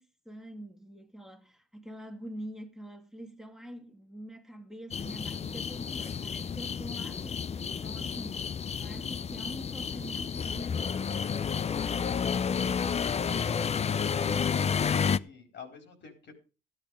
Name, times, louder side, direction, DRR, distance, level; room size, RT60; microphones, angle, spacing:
voice 1, 0.0-11.6, equal, 5° right, 1.9 m, -45 dB
sound 1, 4.9-15.2, left 6 dB, 35° left, 0.5 m, -31 dB
voice 2, 14.8-16.3, left 4 dB, 65° left, 4.2 m, -48 dB
13.0 x 8.8 x 5.3 m
cardioid pair, 90°, 20 cm